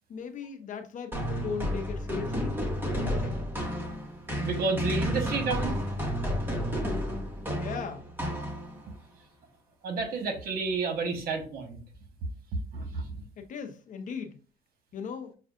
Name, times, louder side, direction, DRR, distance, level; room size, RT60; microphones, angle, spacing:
voice 1, 0.1-2.6 2.9-3.4 7.5-8.0 13.4-14.4 14.9-15.3, left 6 dB, 50° left, 0.7 m, -38 dB
sound 1, 1.1-8.9, equal, 10° right, 1.2 m, -31 dB
voice 2, 4.4-5.8 9.8-11.8 12.7-13.0, right 4 dB, 65° right, 1.2 m, -30 dB
6.4 x 2.3 x 2.5 m
cardioid pair, 110°, 17 cm